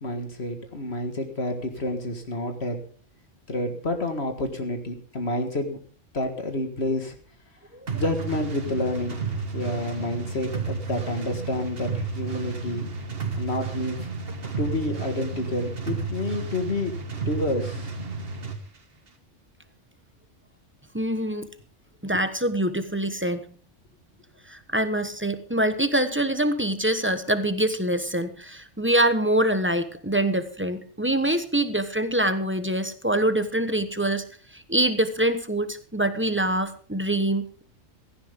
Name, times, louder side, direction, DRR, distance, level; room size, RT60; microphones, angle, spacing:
voice 1, 0.0-2.8 3.5-5.8 6.1-7.2 7.9-12.9 13.4-14.1 14.6-16.9 17.3-17.9, left 1 dB, 55° left, 5 dB, 2.0 m, -29 dB
sound 1, 7.9-18.6, right 4 dB, 50° right, 1.8 m, -32 dB
voice 2, 20.9-21.5 22.0-23.4 24.5-34.2 34.5-37.6, right 1 dB, 10° right, 10 dB, 1.0 m, -25 dB
16.5 x 14.5 x 3.7 m, 0.42 s
omnidirectional pair, 1.3 m